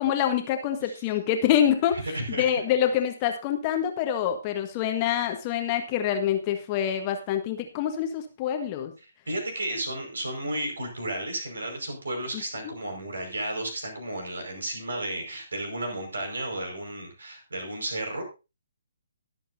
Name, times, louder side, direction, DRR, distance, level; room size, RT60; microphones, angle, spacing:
voice 1, 0.0-2.0 2.3-8.9 12.3-12.4, left 10 dB, 25° left, 5 dB, 1.6 m, -26 dB
voice 2, 2.1-2.5 9.3-18.2, right 1 dB, 65° right, 4 dB, 5.2 m, -33 dB
22.5 x 7.8 x 2.7 m, 0.28 s
figure-of-eight pair, 135°, 0 cm